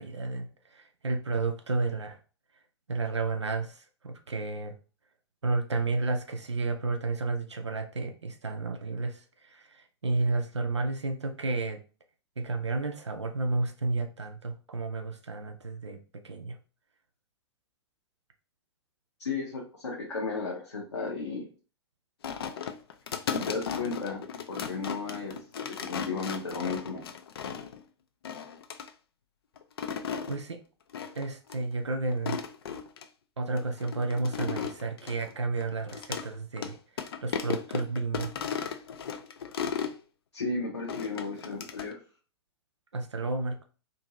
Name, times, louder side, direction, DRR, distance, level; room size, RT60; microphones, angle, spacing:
voice 1, 0.0-2.2 2.9-4.8 5.4-11.8 12.4-16.0 16.2-16.6 30.3-30.6 31.1-32.4 33.4-36.8 37.2-38.3 42.9-43.6, right 3 dB, 80° right, 5 dB, 0.5 m, -31 dB
voice 2, 19.2-21.5 23.3-27.1 40.3-42.0, left 4 dB, 80° left, -3 dB, 0.8 m, -34 dB
sound 1, 22.2-27.8 28.2-28.9 29.6-30.4 30.9-31.2 31.5-31.6 32.1-33.1 33.6-36.3 36.6-36.7 37.0-40.0 40.9-41.9, left 7 dB, 60° left, 0.4 m, -35 dB
2.6 x 2.5 x 2.9 m, 0.36 s
figure-of-eight pair, 105°, 14 cm